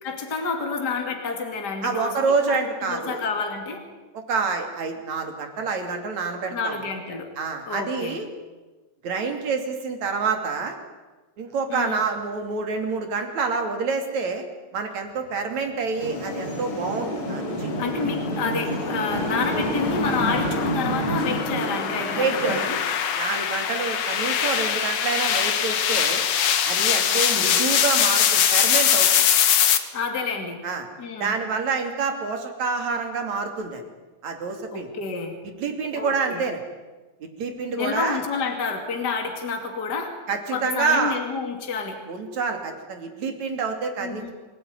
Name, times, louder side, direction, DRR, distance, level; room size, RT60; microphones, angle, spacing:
voice 1, 0.0-2.2 2.5-2.6 2.9-3.9 6.5-7.3 7.7-8.2 11.7-12.0 17.8-22.8 27.1-27.6 29.9-30.6 31.0-31.3 34.7-35.3 36.0-36.4 37.7-40.2 40.5-42.0 44.0-44.3, left 5 dB, 35° left, 3 dB, 2.9 m, -29 dB
voice 2, 1.8-3.2 4.3-6.8 7.4-8.3 9.0-10.8 11.4-14.5 14.7-17.7 22.1-22.7 23.2-26.2 26.6-29.3 30.6-30.9 31.2-33.8 34.2-34.9 35.4-36.6 37.2-38.2 40.3-41.2 42.1-44.3, right 4 dB, 70° right, 4 dB, 4.2 m, -27 dB
sound 1, 16.0-22.6, equal, 90° left, 5.9 m, -28 dB
sound 2, 17.7-29.8, left 9 dB, 65° left, 2.5 m, -23 dB
27.0 x 18.0 x 9.6 m, 1.2 s
omnidirectional pair, 3.3 m